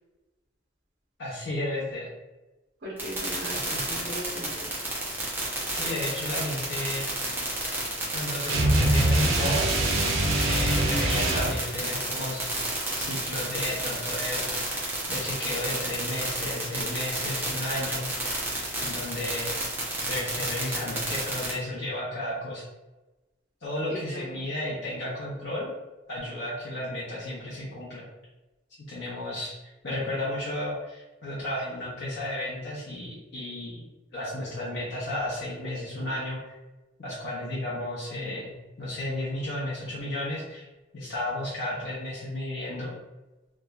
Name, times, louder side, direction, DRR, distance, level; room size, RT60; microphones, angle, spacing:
voice 1, 1.2-2.1 3.5-3.9 5.7-7.0 8.1-9.6 10.4-12.6 13.0-14.5 14.7-14.8 15.1-18.1 18.8-19.6 20.0-22.6 23.6-25.7 26.1-28.1 28.9-29.5 29.8-33.9 34.1-36.4 37.0-38.5 38.8-40.7 40.9-42.9, left 1 dB, 60° left, -8 dB, 0.6 m, -33 dB
voice 2, 2.8-4.8 23.9-24.4, right 1 dB, 55° right, -6 dB, 0.8 m, -38 dB
sound 1, 3.0-21.5, right 2 dB, 10° right, 0.6 m, -31 dB
sound 2, 8.5-11.6, right 1 dB, 80° right, 0.5 m, -23 dB
2.9 x 2.2 x 2.3 m, 1.1 s
head